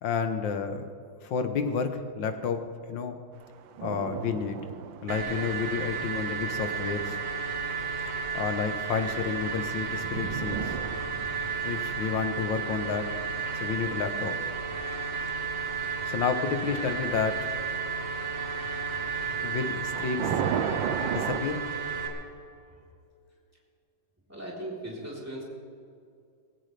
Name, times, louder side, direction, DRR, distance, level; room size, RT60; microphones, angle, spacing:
voice 1, 0.0-0.8 1.2-2.6 2.9-3.2 3.8-4.7 5.0-7.2 8.3-10.8 11.7-13.1 13.5-14.4 16.1-17.5 19.4-20.4 21.0-21.6, left 6 dB, 75° left, 7 dB, 1.8 m, -30 dB
sound 1, 3.4-16.3 16.6-16.9 18.3-21.4, right 8 dB, 85° right, 1.5 m, -36 dB
sound 2, 5.1-22.1, right 5 dB, 50° right, 2.0 m, -33 dB
voice 2, 24.3-25.4, right 1 dB, 10° right, -5 dB, 3.6 m, -38 dB
18.5 x 16.5 x 3.4 m, 2.4 s
omnidirectional pair, 2.1 m